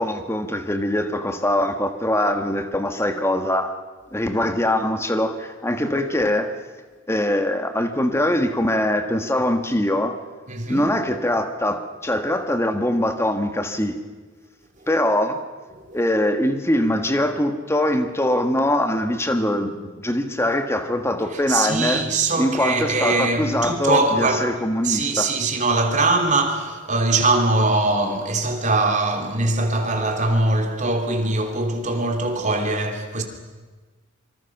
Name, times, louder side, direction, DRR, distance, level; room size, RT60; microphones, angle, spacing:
voice 1, 0.0-3.7 4.1-6.5 7.1-10.2 10.7-14.0 14.9-15.4 15.9-22.1 22.4-25.3, left 1 dB, 10° left, 1.6 m, -22 dB
voice 2, 10.5-10.9 15.7-16.0 21.3-33.2, right 2 dB, 35° right, 2.9 m, -22 dB
26.0 x 25.0 x 6.0 m
head